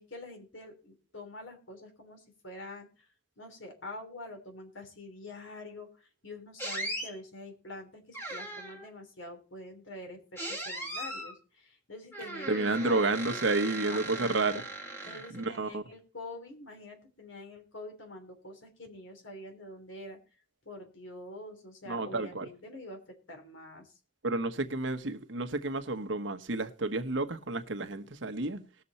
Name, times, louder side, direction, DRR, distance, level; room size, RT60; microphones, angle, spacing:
voice 1, 0.0-3.1 3.4-13.4 13.8-14.6 15.1-20.2 20.6-23.0 23.3-24.0, left 2 dB, 90° left, 3.5 m, -46 dB
sound 1, 6.6-7.1 8.1-8.9 10.4-11.3 12.1-15.6, right 1 dB, 10° left, 2.0 m, -38 dB
voice 2, 12.5-14.6 15.0-15.8 21.9-22.5 24.2-28.6, right 3 dB, 80° right, 1.1 m, -31 dB
19.5 x 6.8 x 4.2 m
head